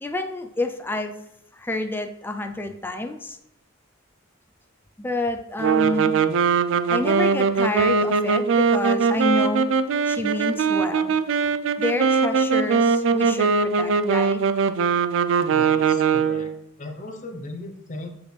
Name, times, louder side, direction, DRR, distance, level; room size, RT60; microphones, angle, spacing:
voice 1, 0.0-1.1 1.5-3.4 5.0-6.2 6.9-9.7 10.0-11.2 11.8-14.4, left 2 dB, 10° left, 6 dB, 0.4 m, -28 dB
sound 1, 5.6-16.6, right 5 dB, 60° right, 0.3 m, -21 dB
voice 2, 15.5-16.5 16.8-18.1, left 2 dB, 35° left, 3 dB, 0.8 m, -37 dB
6.2 x 5.2 x 3.3 m, 0.78 s
head